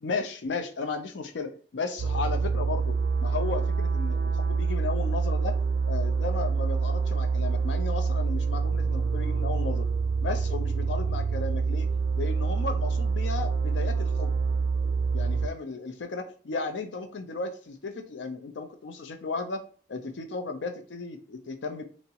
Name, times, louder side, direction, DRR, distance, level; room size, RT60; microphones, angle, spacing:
voice 1, 0.0-5.6 5.9-9.9 10.2-11.9 12.2-14.3 15.1-19.6 19.9-21.8, left 4 dB, 90° left, 6 dB, 0.5 m, -35 dB
sound 1, 2.0-15.5, right 5 dB, 65° right, 0.3 m, -26 dB
3.6 x 2.0 x 2.8 m, 0.42 s
head